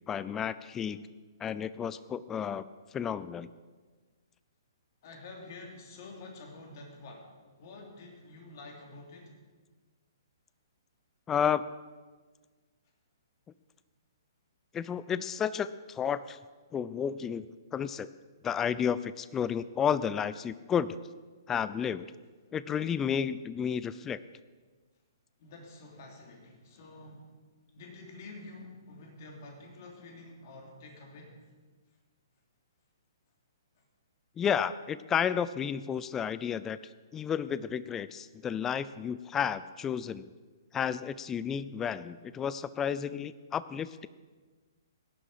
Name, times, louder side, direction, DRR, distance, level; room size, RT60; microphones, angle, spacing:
voice 1, 0.1-1.0 1.4-2.6 2.9-3.5 11.3-11.6 14.7-16.4 16.7-17.5 17.7-18.1 18.4-21.0 21.5-22.1 22.5-24.2 34.4-36.8 37.1-40.2 40.7-44.1, left 8 dB, 15° left, 16 dB, 0.4 m, -31 dB
voice 2, 5.0-9.3 25.4-27.3 27.7-31.4, left 2 dB, 45° left, 1 dB, 3.0 m, -48 dB
17.5 x 11.0 x 4.9 m, 1.4 s
figure-of-eight pair, 125°, 2 cm